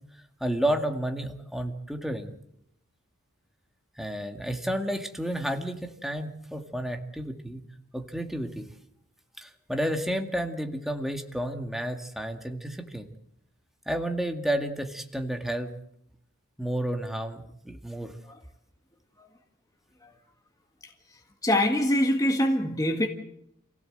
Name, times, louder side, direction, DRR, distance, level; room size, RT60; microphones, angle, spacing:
voice 1, 0.4-2.4 4.0-7.6 7.9-8.7 9.4-13.1 13.9-15.7 16.6-18.1, right 1 dB, ahead, 4 dB, 2.0 m, -31 dB
voice 2, 21.4-23.1, left 1 dB, 15° left, 3 dB, 1.7 m, -23 dB
28.0 x 17.0 x 7.9 m, 0.77 s
head